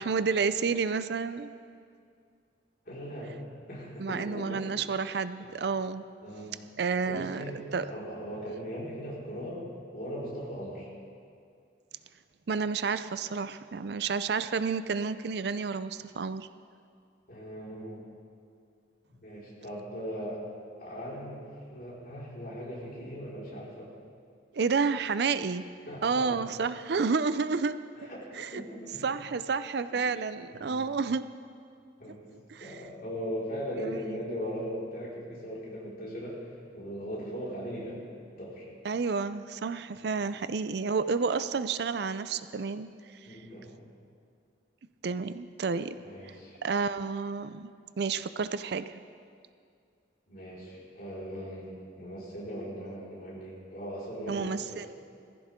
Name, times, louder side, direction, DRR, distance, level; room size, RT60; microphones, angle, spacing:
voice 1, 0.0-1.5 4.0-6.0 6.8-7.4 7.7-7.9 12.5-16.5 24.5-27.8 28.4-28.6 29.0-31.3 32.5-32.7 33.8-34.0 38.8-42.9 45.0-46.0 46.2-46.4 46.6-47.7 48.0-49.0 54.3-54.9, right 5 dB, 60° right, 13 dB, 0.4 m, -30 dB
voice 2, 2.8-3.4 3.7-4.6 5.4-5.5 6.2-6.6 7.0-10.9 17.3-18.0 19.1-20.4 20.8-23.9 25.9-26.4 28.0-29.1 29.9-30.0 30.5-30.8 32.0-32.3 32.6-36.4 36.7-38.0 38.4-38.6 43.2-43.8 46.0-46.6 50.3-54.8, equal, 50° left, -7 dB, 4.8 m, -39 dB
19.5 x 15.0 x 3.7 m, 2.3 s
head